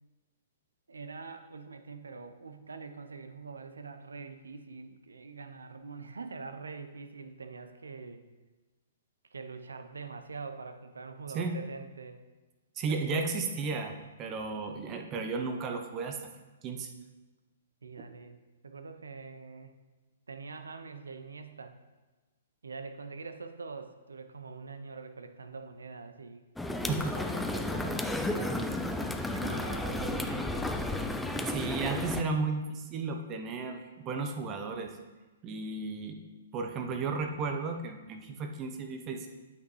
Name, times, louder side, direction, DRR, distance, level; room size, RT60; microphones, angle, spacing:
voice 1, 0.9-8.2 9.3-12.2 12.9-13.3 17.8-18.4 18.6-19.7 20.3-21.8 22.6-26.4 26.8-28.6 29.3-30.7, right 4 dB, 85° right, 8 dB, 0.7 m, -44 dB
voice 2, 12.8-16.2 16.6-16.9 26.9-27.2 31.5-35.0 35.4-36.2 36.5-39.3, right 4 dB, 30° right, 5 dB, 0.8 m, -34 dB
sound 1, 26.6-32.2, left 1 dB, 5° left, 0.4 m, -33 dB
8.5 x 6.7 x 3.2 m, 1.2 s
hypercardioid pair, 125°, 0 cm